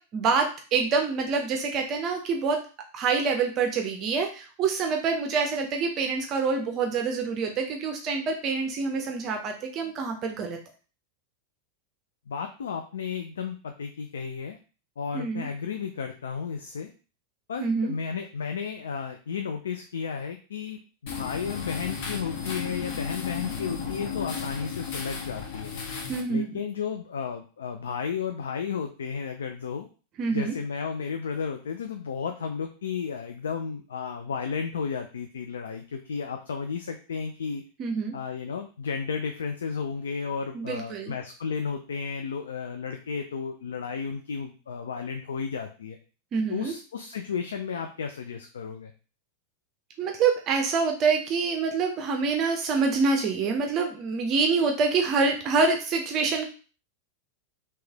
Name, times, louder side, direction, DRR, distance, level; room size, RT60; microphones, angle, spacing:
voice 1, 0.1-2.6 2.9-10.6 15.1-15.5 17.6-17.9 26.1-26.5 30.2-30.6 37.8-38.1 40.5-41.1 46.3-46.7 50.0-56.5, right 4 dB, 35° right, 3 dB, 0.5 m, -26 dB
voice 2, 12.3-14.6 15.0-16.9 17.5-25.7 26.3-29.9 30.3-37.6 38.1-46.0 46.5-48.9, left 6 dB, 65° left, 5 dB, 0.3 m, -33 dB
sound 1, 21.1-26.2, left 6 dB, 50° left, 0.8 m, -34 dB
3.1 x 2.9 x 3.4 m, 0.36 s
figure-of-eight pair, 90°, 0 cm